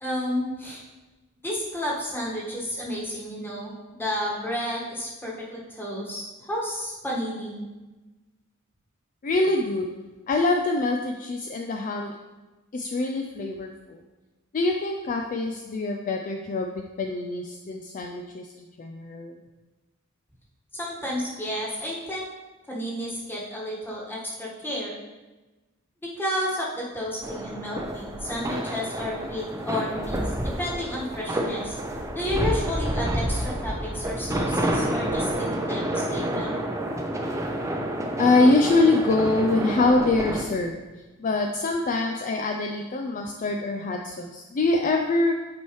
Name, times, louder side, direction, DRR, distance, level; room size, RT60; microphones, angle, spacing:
voice 1, 0.0-0.8 1.4-7.6 20.7-22.3 22.7-25.0 26.2-31.7 32.1-36.6, equal, 10° left, -5 dB, 1.5 m, -31 dB
voice 2, 9.2-9.9 10.3-12.1 12.7-14.0 14.5-19.4 38.2-40.8 41.2-45.3, left 2 dB, 40° left, 2 dB, 0.4 m, -24 dB
sound 1, 27.2-40.4, right 1 dB, 15° right, 0.6 m, -29 dB
8.3 x 4.6 x 3.1 m, 1.2 s
head